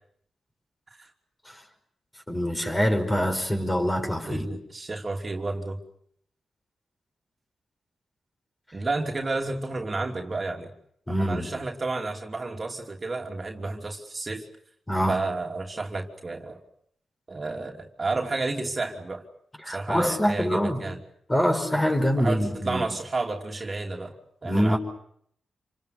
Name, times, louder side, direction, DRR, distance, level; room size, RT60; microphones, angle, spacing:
voice 1, 2.3-4.5 11.1-11.5 14.9-15.2 19.6-20.9 21.3-22.9 24.4-24.8, equal, 20° left, 5 dB, 5.5 m, -25 dB
voice 2, 4.3-5.8 8.7-10.7 11.2-14.4 15.1-16.6 17.3-19.2 19.7-21.0 22.1-24.1 24.4-24.8, right 3 dB, 35° right, 2 dB, 3.0 m, -31 dB
28.0 x 25.0 x 6.8 m, 0.68 s
cardioid pair, 60°, 0 cm